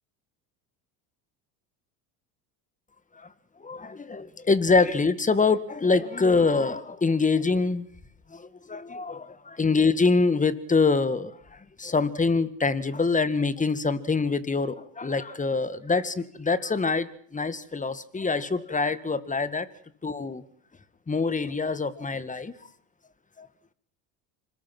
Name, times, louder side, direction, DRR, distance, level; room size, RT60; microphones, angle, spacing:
voice 1, 3.6-7.9 8.3-11.4 11.8-19.7 20.0-20.4 21.1-22.5 23.4-23.5, left 4 dB, 15° left, 14 dB, 2.0 m, -25 dB
26.5 x 21.5 x 6.2 m, 0.62 s
supercardioid pair, 90°, 45 cm